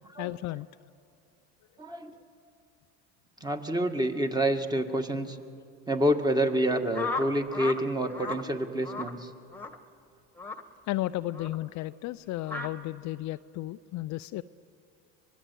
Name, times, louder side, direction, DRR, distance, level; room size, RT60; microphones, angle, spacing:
voice 1, 0.2-0.7 10.9-14.4, left 16 dB, 50° left, 12 dB, 0.5 m, -33 dB
voice 2, 1.8-2.1 3.4-5.4 5.9-9.3, right 1 dB, 10° right, 6 dB, 1.8 m, -28 dB
sound 1, 6.9-7.8 8.1-8.4 8.8-9.1 9.5-9.8 10.4-10.6 11.3-11.6 12.4-12.7, left 4 dB, 5° left, 1.7 m, -34 dB
24.5 x 20.0 x 8.3 m, 2.4 s
supercardioid pair, 85°, 37 cm